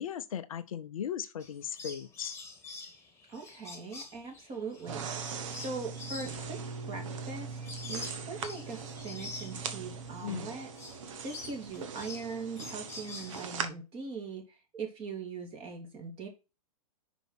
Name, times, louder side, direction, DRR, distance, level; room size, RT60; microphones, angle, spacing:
voice 1, 0.0-2.4 10.2-10.5, left 9 dB, 65° left, 0.7 m, -37 dB
sound 1, 1.4-10.3 10.7-13.7, left 3 dB, 15° left, 1.7 m, -47 dB
voice 2, 3.3-6.6 6.8-10.7 11.2-16.3, right 4 dB, 30° right, 2.7 m, -41 dB
sound 2, 4.9-13.7, right 5 dB, 55° right, 1.2 m, -40 dB
5.3 x 5.0 x 5.7 m
figure-of-eight pair, 110°, 19 cm